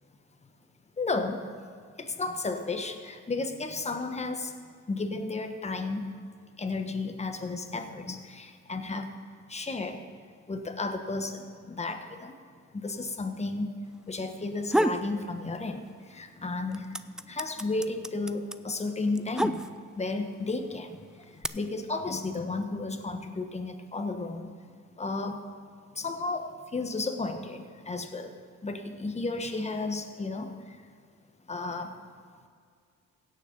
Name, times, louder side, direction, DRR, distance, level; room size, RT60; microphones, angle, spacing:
voice 1, 1.0-1.4 2.0-4.5 4.9-6.1 6.6-9.1 9.5-10.0 10.5-12.3 12.7-13.7 14.1-15.8 16.1-16.9 17.3-19.6 20.0-21.0 21.5-24.5 25.0-25.4 26.0-28.3 28.6-30.5 31.5-31.9, left 3 dB, 20° left, 6 dB, 1.2 m, -33 dB
sound 1, 14.4-15.1 15.5-16.2 16.5-20.1 20.8-21.5, right 1 dB, ahead, 0.3 m, -29 dB
17.0 x 6.5 x 5.3 m, 2.1 s
cardioid pair, 90°, 30 cm